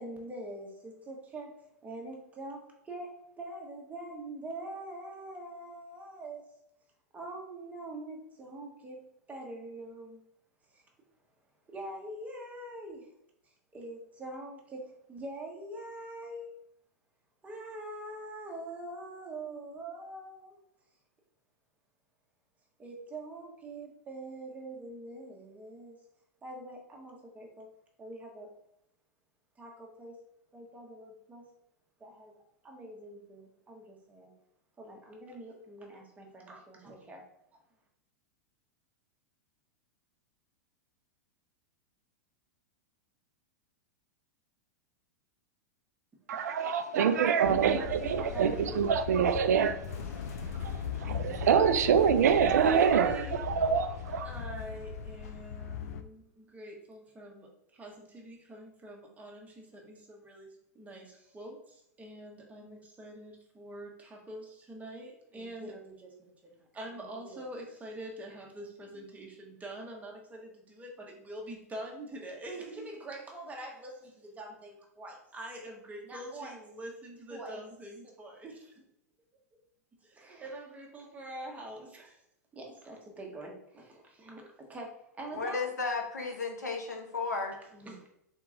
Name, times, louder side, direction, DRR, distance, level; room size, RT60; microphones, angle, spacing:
voice 1, 0.0-1.5 1.8-6.5 7.1-10.2 10.7-10.8 11.7-13.1 13.7-16.5 17.4-20.6 22.8-26.0 26.4-27.7 28.0-28.5 29.6-30.2 30.5-31.5 32.0-32.3 32.6-34.3 34.8-37.2 46.9-47.9 48.1-48.8 49.9-50.0 52.4-53.4 54.2-78.7 80.0-82.2 82.5-85.6 87.7-88.1, right 1 dB, 15° right, 1.2 m, -44 dB
voice 2, 46.3-54.3, right 7 dB, 75° right, 0.4 m, -26 dB
sound 1, 47.4-56.0, left 7 dB, 65° left, 0.4 m, -38 dB
voice 3, 85.3-87.6, left 4 dB, 90° left, 0.9 m, -34 dB
3.7 x 2.9 x 3.8 m
hypercardioid pair, 100°, 9 cm